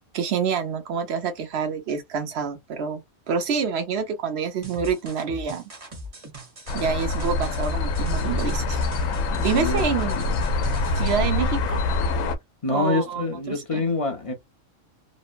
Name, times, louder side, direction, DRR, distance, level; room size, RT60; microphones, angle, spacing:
voice 1, 0.0-3.0 3.3-5.6 6.7-8.8 9.4-10.2 11.0-11.8 12.7-13.8, right 6 dB, 60° right, 0.9 m, -27 dB
sound 1, 4.6-11.3, equal, 30° right, 0.9 m, -39 dB
sound 2, 6.7-12.3, left 3 dB, 85° left, 1.0 m, -25 dB
voice 2, 12.6-14.3, left 3 dB, 35° left, 0.6 m, -26 dB
3.0 x 2.1 x 2.5 m
omnidirectional pair, 1.4 m